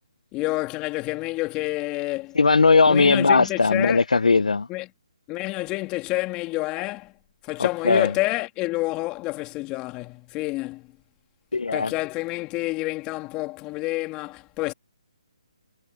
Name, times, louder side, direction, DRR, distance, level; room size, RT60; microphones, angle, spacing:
voice 1, 0.3-2.4 2.9-4.0 4.7-4.9 5.3-7.1 7.4-10.9 11.7-14.7, left 21 dB, 20° left, 2.6 m, -28 dB
voice 2, 2.4-4.7 7.6-8.1 11.5-11.9, left 4 dB, 80° left, 1.3 m, -18 dB
hypercardioid pair, 150°, 4 cm